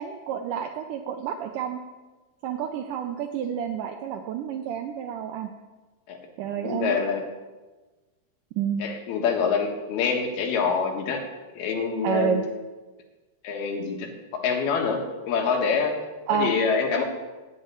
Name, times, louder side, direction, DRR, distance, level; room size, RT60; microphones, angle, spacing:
voice 1, 0.0-1.8 2.4-5.5 6.4-7.0 8.6-8.8 12.0-12.4 16.3-16.6, right 8 dB, 80° right, 5 dB, 1.9 m, -29 dB
voice 2, 6.6-7.2 8.8-11.2 11.6-12.4 13.4-14.1 14.3-16.0 16.3-17.0, left 5 dB, 80° left, 3 dB, 3.4 m, -25 dB
8.7 x 8.5 x 8.9 m, 1.2 s
omnidirectional pair, 4.4 m